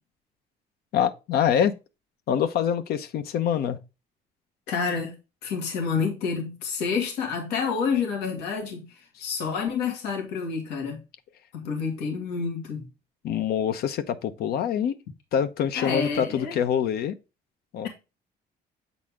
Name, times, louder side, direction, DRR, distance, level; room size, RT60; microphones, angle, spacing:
voice 1, 0.9-1.8 2.3-3.8 13.2-15.0 15.3-17.1 17.7-17.9, left 8 dB, 70° left, 0.8 m, -25 dB
voice 2, 4.7-11.0 11.5-12.9 15.7-16.6, left 5 dB, 90° left, 1.9 m, -29 dB
7.7 x 4.1 x 3.5 m
cardioid pair, 110°, 17 cm